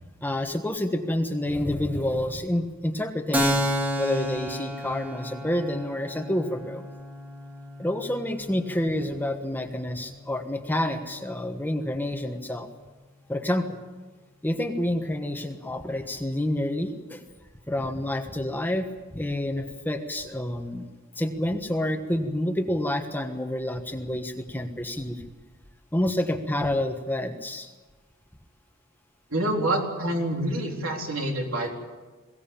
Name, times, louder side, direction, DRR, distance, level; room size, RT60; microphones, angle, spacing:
voice 1, 0.2-3.6 4.0-6.8 7.8-12.7 13.3-13.8 14.4-17.2 17.7-18.9 19.1-20.9 21.2-25.2 25.9-27.7, left 1 dB, 10° left, 5 dB, 1.3 m, -28 dB
Keyboard (musical), 3.3-10.6, equal, 10° right, 2.0 m, -32 dB
voice 2, 29.3-31.7, right 1 dB, 70° right, 1 dB, 4.0 m, -27 dB
22.5 x 17.0 x 8.9 m, 1.3 s
head